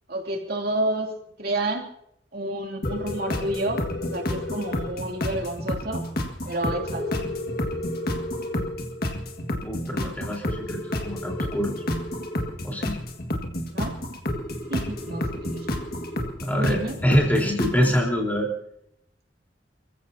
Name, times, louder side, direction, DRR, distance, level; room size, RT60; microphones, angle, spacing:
voice 1, 0.1-1.1 1.4-1.9 2.3-6.0 6.4-7.3 13.7-14.0 14.7-15.6 16.5-17.0, right 1 dB, 55° right, 1 dB, 2.9 m, -29 dB
sound 1, 2.8-18.0, left 1 dB, 55° left, 1.8 m, -30 dB
Keyboard (musical), 7.0-10.0, left 6 dB, 15° right, 1.9 m, -41 dB
voice 2, 9.6-11.7 12.6-13.0 16.4-18.5, equal, 10° left, -1 dB, 4.0 m, -25 dB
29.5 x 15.5 x 2.8 m, 0.76 s
head